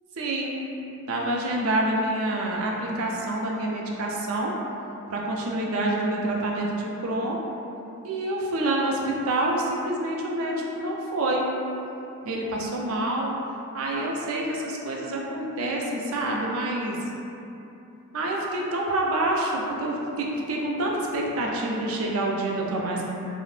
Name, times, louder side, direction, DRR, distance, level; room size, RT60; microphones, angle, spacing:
voice 1, 0.2-0.6 1.1-4.5 5.1-7.4 8.0-11.5 12.2-13.4 13.7-17.0 18.1-23.0, right 1 dB, 70° right, -2 dB, 0.4 m, -27 dB
2.8 x 2.0 x 3.0 m, 2.8 s
head